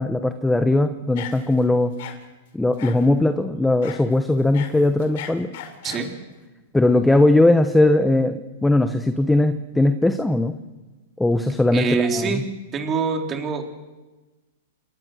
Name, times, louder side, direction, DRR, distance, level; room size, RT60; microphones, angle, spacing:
voice 1, 0.0-1.9 2.5-5.5 6.7-10.6 11.2-12.4, left 2 dB, 5° left, 8 dB, 0.9 m, -19 dB
sound 1, 1.2-1.6 2.0-2.2 2.8-3.1 3.8-4.0 4.4-6.1, left 10 dB, 55° left, 3.3 m, -37 dB
voice 2, 11.7-12.4 12.7-13.6, right 5 dB, 20° right, 3 dB, 3.5 m, -24 dB
28.0 x 20.0 x 6.4 m, 1.2 s
hypercardioid pair, 150°, 0 cm